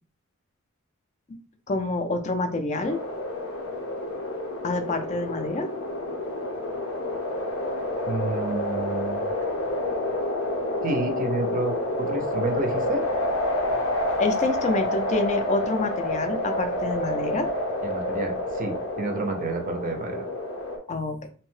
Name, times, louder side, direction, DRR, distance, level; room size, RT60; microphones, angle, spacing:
voice 1, 1.7-3.0 4.6-5.7 14.2-17.5 20.9-21.2, left 2 dB, 35° left, 7 dB, 0.4 m, -27 dB
sound 1, 2.8-20.8, left 1 dB, 80° left, 0.7 m, -29 dB
voice 2, 8.1-9.3 10.8-13.0 17.8-20.2, right 3 dB, 40° right, 4 dB, 0.5 m, -30 dB
2.7 x 2.1 x 3.1 m, 0.42 s
head